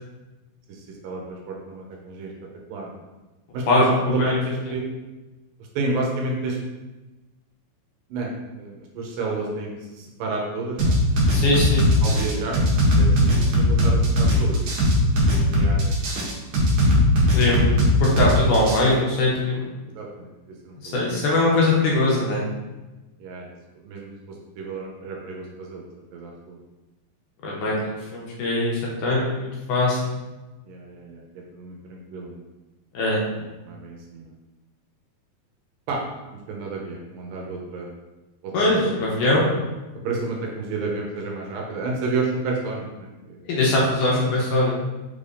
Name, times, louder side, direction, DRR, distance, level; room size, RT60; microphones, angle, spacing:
voice 1, 0.7-2.3 2.7-2.9 3.5-4.8 5.8-6.6 8.1-8.3 8.6-11.0 12.0-12.6 13.0-14.7 15.3-15.9 17.5-17.8 20.0-20.3 20.6-21.8 23.2-23.5 23.8-25.8 26.1-26.6 30.7-31.2 31.5-32.4 33.4-34.3 35.9-36.0 36.3-37.9 38.4-38.9 39.3-39.5 40.0-43.4, right 3 dB, 80° right, -1 dB, 2.2 m, -31 dB
sound 1, 10.8-18.8, equal, 65° right, 1.9 m, -19 dB
voice 2, 11.3-11.9 17.3-17.7 18.0-19.6 20.9-22.4 27.4-30.0 32.9-33.2 38.5-39.5 43.5-44.7, left 2 dB, 75° left, -4 dB, 2.1 m, -21 dB
5.4 x 3.3 x 2.6 m, 1.1 s
omnidirectional pair, 4.2 m